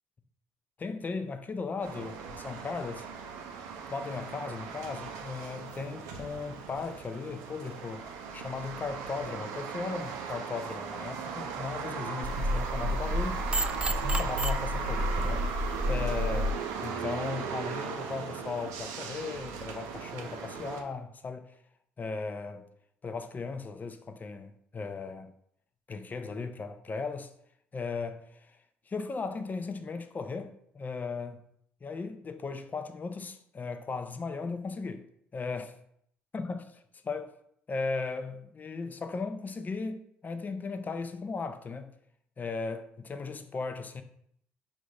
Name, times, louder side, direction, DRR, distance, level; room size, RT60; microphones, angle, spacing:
voice 1, 0.8-3.1 3.9-8.0 8.3-13.4 13.9-21.6 22.0-22.6 23.0-25.3 25.9-27.3 27.7-28.6 28.9-31.4 31.8-35.1 35.3-35.8 36.3-36.7 37.0-37.3 37.7-41.9 42.4-44.0, left 4 dB, 35° left, 0.5 m, -37 dB
sound 1, 1.8-20.8, right 6 dB, 75° right, 0.5 m, -38 dB
sound 2, 12.2-16.5, equal, 20° right, 0.3 m, -30 dB
5.1 x 2.6 x 3.3 m
hypercardioid pair, 60°, 5 cm